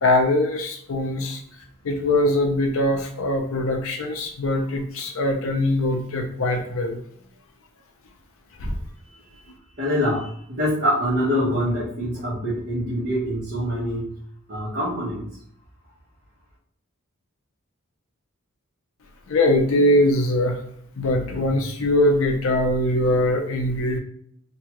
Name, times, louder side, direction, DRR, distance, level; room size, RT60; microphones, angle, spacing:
voice 1, 0.0-1.4 1.8-7.0 8.6-8.7 19.3-20.6 21.0-24.0, left 1 dB, 70° left, 4 dB, 0.5 m, -22 dB
voice 2, 9.1-9.5 9.8-14.2 14.5-15.3, equal, 45° right, -11 dB, 1.1 m, -25 dB
2.7 x 2.3 x 2.9 m, 0.65 s
head